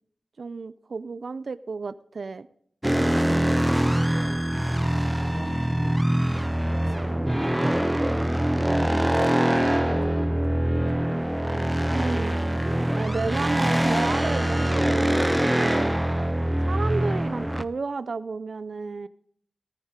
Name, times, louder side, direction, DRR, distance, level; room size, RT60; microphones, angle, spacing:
voice 1, 0.4-2.5 11.9-12.5 13.0-16.0 16.6-19.1, right 4 dB, 60° right, 15 dB, 0.4 m, -32 dB
sound 1, 2.8-17.6, right 1 dB, 5° right, 0.5 m, -23 dB
voice 2, 3.6-5.9 6.2-7.7 8.8-11.1 11.4-11.6, left 1 dB, 20° left, 7 dB, 1.3 m, -43 dB
18.5 x 9.5 x 3.7 m, 0.65 s
wide cardioid pair, 120°, 0 cm